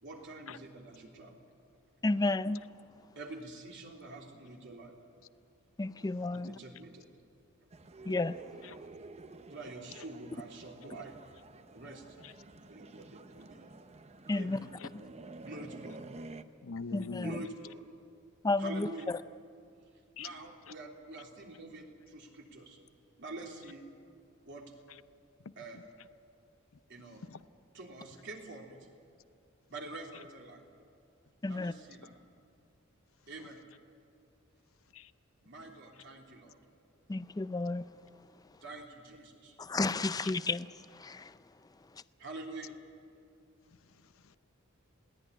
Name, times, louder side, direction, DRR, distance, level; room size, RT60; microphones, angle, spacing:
voice 1, 0.0-1.3 3.1-4.9 6.3-7.1 9.5-11.1 11.7-12.0 12.7-13.7 14.3-14.7 15.4-16.0 17.2-17.8 18.6-19.1 20.2-22.8 23.2-23.8 24.4-24.6 25.6-25.9 26.9-27.2 27.7-28.8 29.7-30.6 31.5-32.1 33.3-33.6 35.4-36.6 38.6-39.6 42.2-42.8, right 2 dB, 60° right, 0 dB, 3.3 m, -46 dB
voice 2, 2.0-2.6 5.8-6.6 8.0-8.4 14.3-14.6 14.9-15.0 16.9-17.4 18.4-19.2 31.4-31.7 37.1-37.9 39.6-41.4 41.9-42.0, left 2 dB, 20° left, 14 dB, 0.4 m, -32 dB
sound 1, 7.7-16.4, right 3 dB, 30° right, 0.7 m, -50 dB
voice 3, 16.6-17.4 20.2-20.3 25.4-25.5 27.2-27.4 34.9-35.1 44.2-44.4, left 4 dB, 80° left, 13 dB, 0.7 m, -42 dB
21.0 x 17.0 x 9.9 m, 2.4 s
head